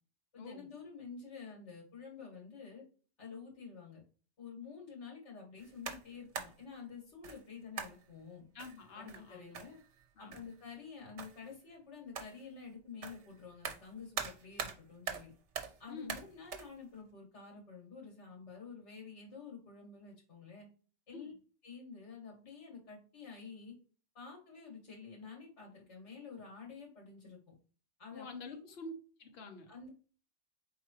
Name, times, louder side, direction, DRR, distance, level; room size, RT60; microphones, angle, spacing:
voice 1, 0.3-2.8 3.2-4.0 4.4-8.5 8.9-9.8 10.2-15.3 15.8-20.7 21.1-21.3 21.6-23.7 24.1-27.4 28.0-28.6 29.7-29.9, left 5 dB, 75° left, 1 dB, 2.2 m, -49 dB
sound 1, 5.6-6.6 7.2-7.4 7.8-8.1 8.6-10.0 10.3-10.6 11.2-11.5 12.1-12.4 13.0-14.8 15.1-15.8 16.1-16.7, right 6 dB, 75° right, 1.1 m, -43 dB
voice 2, 8.5-9.5 10.2-10.4 15.9-16.2 21.1-21.3 28.1-28.9 29.2-29.7, left 3 dB, 60° left, 5 dB, 1.1 m, -47 dB
4.6 x 3.8 x 3.0 m, 0.39 s
omnidirectional pair, 1.2 m